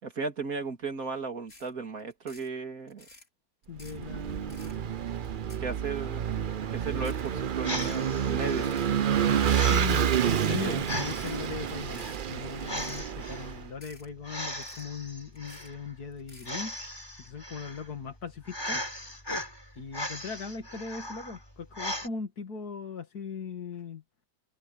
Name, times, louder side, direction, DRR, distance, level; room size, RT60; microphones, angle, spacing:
voice 1, 0.0-3.1 5.6-6.4 6.7-8.7 10.6-10.8, right 4 dB, 65° right, 3.2 m, -35 dB
sound 1, 1.5-1.7 2.0-2.5 2.9-3.3 3.6-4.0 4.4-4.8 5.2-6.0 6.3-6.4 7.0-7.3 7.7-8.0 8.4-8.9 9.3-9.7 10.2-10.5 11.0-11.4 11.8-12.2 12.6-13.0 13.4-13.5 13.8-14.1 14.4-15.0 15.4-15.7 16.1-16.6, left 2 dB, 55° left, 5.3 m, -53 dB
voice 2, 3.7-4.9 9.7-10.2 10.5-16.7 17.2-18.8 19.8-24.0, left 6 dB, 85° left, 2.7 m, -39 dB
Vehicle / Engine, 3.8-13.6, right 9 dB, 50° right, 0.6 m, -29 dB
sound 2, 6.8-22.1, left 1 dB, 15° left, 4.8 m, -39 dB
omnidirectional pair, 1.6 m